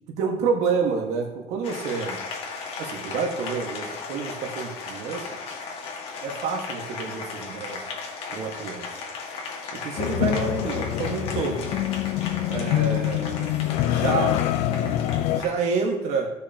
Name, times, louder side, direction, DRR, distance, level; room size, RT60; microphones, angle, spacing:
voice 1, 0.2-2.2 2.8-5.3 6.2-7.8 8.3-8.9 9.7-11.8 12.5-14.4 15.3-16.3, right 5 dB, 75° right, 1 dB, 1.6 m, -28 dB
Applause, 1.6-15.7, left 4 dB, 55° left, 1.8 m, -36 dB
sound 1, 10.0-15.4, left 12 dB, 85° left, 0.6 m, -25 dB
16.0 x 6.2 x 2.9 m, 0.89 s
cardioid pair, 160°, 12 cm